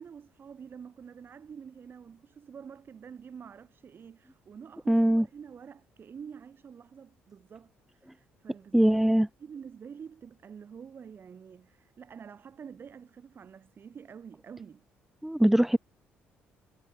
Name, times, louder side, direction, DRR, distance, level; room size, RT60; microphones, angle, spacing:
voice 1, 0.0-8.9 9.4-14.9, right 7 dB, 45° right, 3.6 m, -47 dB
voice 2, 4.9-5.3 8.7-9.3 15.2-15.8, right 1 dB, 5° right, 0.8 m, -22 dB
supercardioid pair, 65°, 5 cm